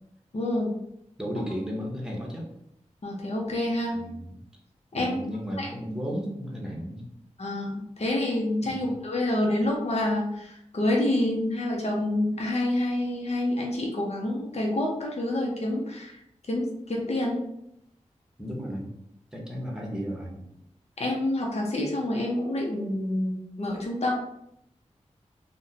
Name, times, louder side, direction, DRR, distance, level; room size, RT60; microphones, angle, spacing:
voice 1, 0.3-0.7 3.0-4.0 4.9-5.2 5.6-5.7 7.4-16.2 16.5-17.4 21.0-24.1, left 1 dB, 55° left, -1 dB, 0.7 m, -27 dB
voice 2, 1.2-2.5 3.9-4.4 4.9-7.0 8.6-8.9 18.4-18.9 19.3-20.5, equal, 5° right, -2 dB, 1.0 m, -34 dB
2.6 x 2.2 x 4.0 m, 0.78 s
cardioid pair, 50°, 13 cm